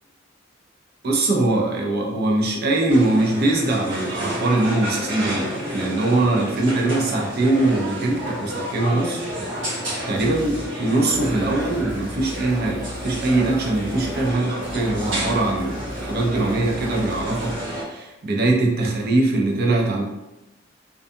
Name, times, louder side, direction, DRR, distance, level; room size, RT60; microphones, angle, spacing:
voice 1, 1.0-9.2 10.1-20.0, right 2 dB, 55° right, 0 dB, 0.5 m, -22 dB
sound 1, 2.9-17.8, equal, 75° right, 1.0 m, -30 dB
sound 2, 10.2-10.7 11.1-14.4 14.6-17.6, equal, 25° left, 0.5 m, -37 dB
2.5 x 2.3 x 2.6 m, 0.95 s
head